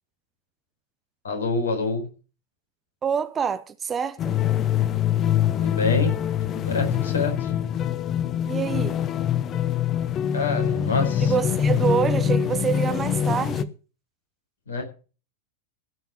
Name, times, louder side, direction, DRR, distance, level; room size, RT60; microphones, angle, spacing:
voice 1, 1.2-2.1 5.5-6.2 6.4-7.5 10.3-11.3 14.7-14.8, left 3 dB, 70° left, 4.6 m, -26 dB
voice 2, 3.0-4.3 8.4-9.0 11.3-13.7, right 7 dB, 20° right, 0.9 m, -26 dB
sound 1, 4.2-13.6, left 9 dB, 30° left, 0.8 m, -24 dB
16.0 x 5.8 x 7.4 m
figure-of-eight pair, 90°, 0 cm